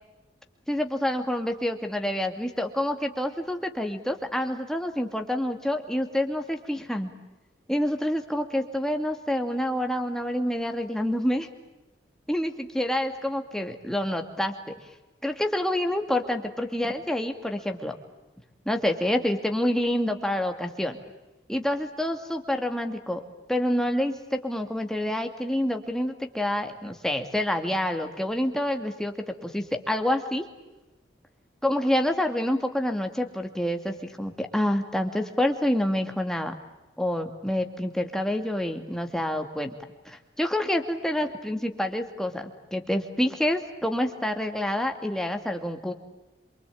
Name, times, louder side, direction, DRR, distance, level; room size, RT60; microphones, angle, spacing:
voice 1, 0.7-7.1 7.7-11.5 12.3-14.5 15.2-18.0 18.7-21.0 21.5-23.2 23.5-30.4 31.6-36.5 37.0-39.7 40.1-45.9, left 1 dB, 5° left, 5 dB, 2.4 m, -27 dB
27.5 x 24.5 x 8.6 m, 1.0 s
head